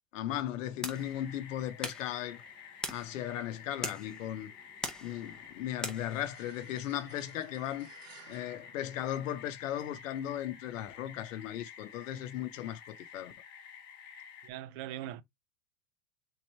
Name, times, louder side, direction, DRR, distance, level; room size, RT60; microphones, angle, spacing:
voice 1, 0.1-2.4 2.9-4.5 5.0-7.9 8.3-13.3, left 12 dB, 85° left, 0.7 m, -37 dB
sound 1, 0.6-6.3, left 1 dB, ahead, 0.6 m, -43 dB
sound 2, 0.9-14.5, left 7 dB, 30° left, 0.9 m, -51 dB
sound 3, 6.1-9.7, right 7 dB, 85° right, 1.7 m, -58 dB
voice 2, 14.4-15.2, right 13 dB, 45° right, 0.6 m, -40 dB
3.8 x 3.1 x 4.2 m
supercardioid pair, 145°, 37 cm